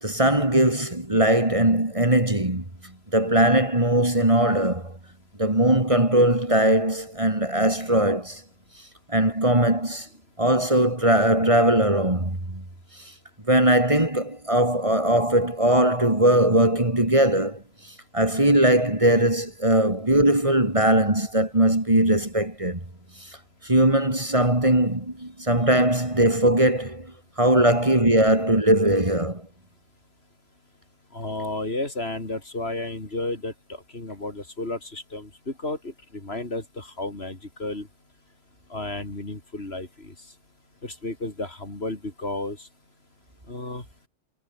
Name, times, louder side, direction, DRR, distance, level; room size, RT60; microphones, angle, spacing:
voice 1, 0.0-2.6 3.1-4.9 5.4-8.4 9.1-10.1 10.4-12.6 13.5-17.6 18.1-22.8 23.6-27.1 27.4-29.4, right 1 dB, 25° right, 3.2 m, -20 dB
voice 2, 31.1-37.9 38.7-40.1 40.8-42.7 43.5-43.8, left 2 dB, 60° left, 4.4 m, -32 dB
omnidirectional pair, 1.2 m